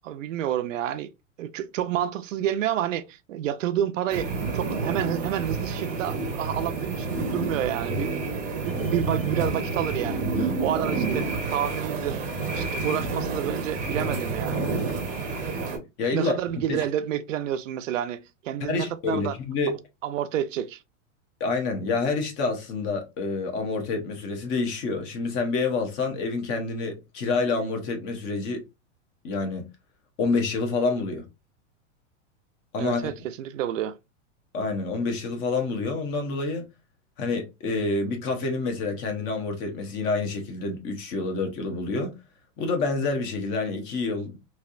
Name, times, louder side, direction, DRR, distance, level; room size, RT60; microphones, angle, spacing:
voice 1, 0.0-1.1 1.4-8.1 8.5-12.2 12.5-14.6 16.1-19.3 19.7-20.8 32.8-34.0, right 11 dB, 85° right, 0.6 m, -29 dB
sound 1, 4.1-15.8, right 3 dB, 20° right, 0.7 m, -29 dB
voice 2, 16.0-16.4 16.7-16.8 18.6-19.8 21.4-28.6 29.2-29.7 30.2-31.2 32.7-33.1 34.5-36.6 37.2-42.2 42.6-44.4, left 3 dB, 30° left, 0.9 m, -28 dB
3.2 x 2.7 x 2.4 m
supercardioid pair, 150°, 37 cm